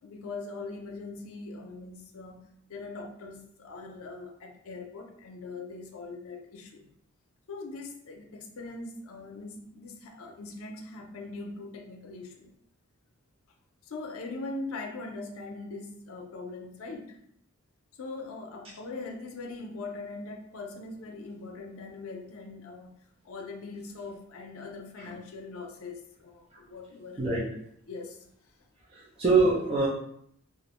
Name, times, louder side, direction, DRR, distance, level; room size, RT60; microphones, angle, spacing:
voice 1, 0.0-6.9 7.5-12.5 13.8-17.2 18.0-22.9 23.2-27.3 27.9-28.2, left 3 dB, 80° left, 3 dB, 0.5 m, -41 dB
voice 2, 28.9-29.9, right 3 dB, 25° right, -6 dB, 0.5 m, -24 dB
2.4 x 2.0 x 2.9 m, 0.69 s
head